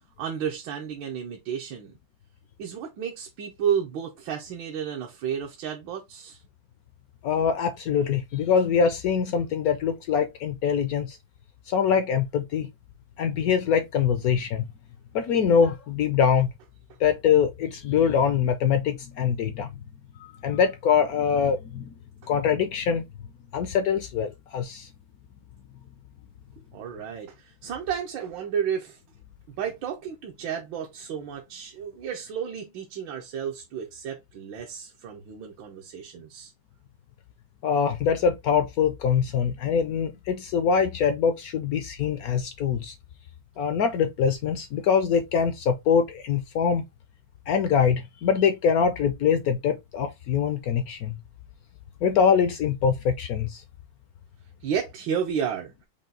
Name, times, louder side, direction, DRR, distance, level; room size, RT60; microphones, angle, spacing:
voice 1, 0.2-1.9 2.6-6.4 26.7-29.0 29.6-36.5 54.6-55.7, right 8 dB, 75° right, 1.4 m, -32 dB
voice 2, 7.2-11.2 11.7-12.7 13.2-14.7 15.1-16.5 17.0-19.7 20.2-21.9 22.3-23.0 23.5-24.9 37.6-42.9 43.6-46.8 47.5-51.2 52.0-53.6, left 7 dB, 75° left, 0.8 m, -23 dB
5.5 x 2.2 x 3.7 m
omnidirectional pair, 2.1 m